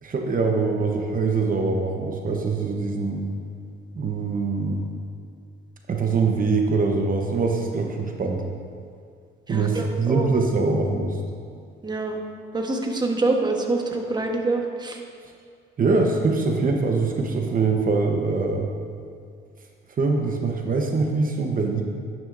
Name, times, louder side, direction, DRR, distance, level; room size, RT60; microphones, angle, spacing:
voice 1, 0.0-3.3 3.9-4.9 5.9-8.4 9.5-11.2 15.8-18.7 20.0-21.8, right 4 dB, 45° right, 2 dB, 1.0 m, -23 dB
voice 2, 9.5-10.3 11.8-12.2 12.5-15.0, right 2 dB, 20° right, 2 dB, 1.1 m, -25 dB
11.0 x 9.2 x 2.6 m, 2.2 s
cardioid pair, 90°, 20 cm